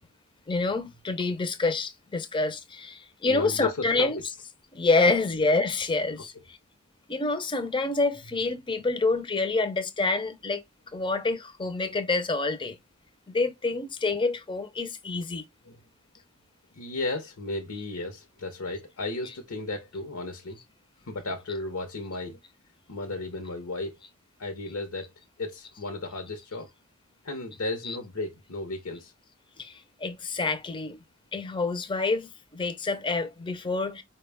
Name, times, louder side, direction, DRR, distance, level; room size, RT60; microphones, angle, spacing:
voice 1, 0.5-4.4 4.7-6.6 7.1-10.6 10.9-12.8 13.3-15.4 23.1-23.2 27.8-28.0 29.6-31.0 31.3-34.0, left 3 dB, 20° left, 0.6 m, -27 dB
voice 2, 3.3-4.1 15.7-15.8 16.8-20.6 21.1-22.4 22.9-24.0 24.4-25.1 25.4-26.7 27.2-29.1, left 2 dB, 70° left, 0.8 m, -34 dB
4.6 x 2.2 x 3.4 m
head